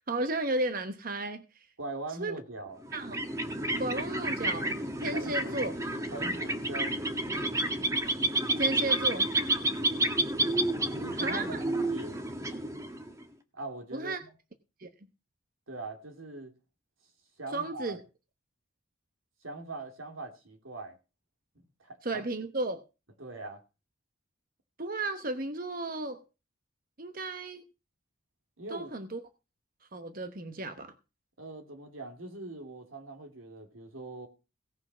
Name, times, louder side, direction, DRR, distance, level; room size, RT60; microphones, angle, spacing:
voice 1, 0.0-1.7 2.2-2.4 2.9-3.2 3.8-5.7 8.6-9.3 11.1-11.6 13.9-14.2 14.8-14.9 17.5-18.0 22.0-22.8 24.8-26.2 27.0-27.6 28.7-29.2 29.9-30.9, right 2 dB, 45° right, 0.9 m, -34 dB
voice 2, 1.8-2.8 5.1-5.6 6.1-7.1 9.6-10.0 10.8-12.2 13.5-14.3 15.7-16.5 17.4-18.0 19.4-21.0 21.8-22.3 23.2-23.6 28.6-28.9 31.4-34.3, right 2 dB, 90° right, 2.8 m, -42 dB
sound 1, 2.8-13.2, right 1 dB, 15° right, 1.3 m, -30 dB
17.0 x 6.1 x 6.1 m
head